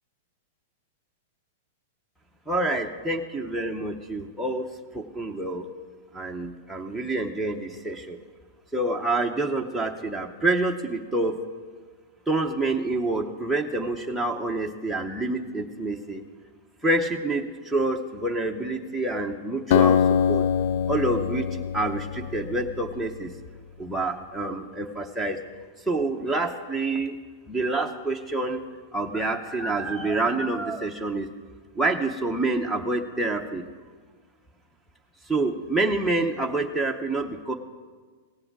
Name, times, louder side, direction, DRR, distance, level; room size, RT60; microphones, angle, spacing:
voice 1, 2.5-4.7 4.9-5.7 6.1-8.2 8.7-11.3 12.3-16.2 16.8-20.4 20.9-21.5 21.7-23.3 23.8-25.4 25.9-27.1 27.5-28.6 28.9-31.3 31.8-33.6 35.3-37.5, right 2 dB, ahead, 6 dB, 0.8 m, -27 dB
Acoustic guitar, 19.7-23.3, left 8 dB, 55° left, 0.3 m, -24 dB
16.5 x 7.7 x 6.0 m, 1.5 s
supercardioid pair, 150°, 0 cm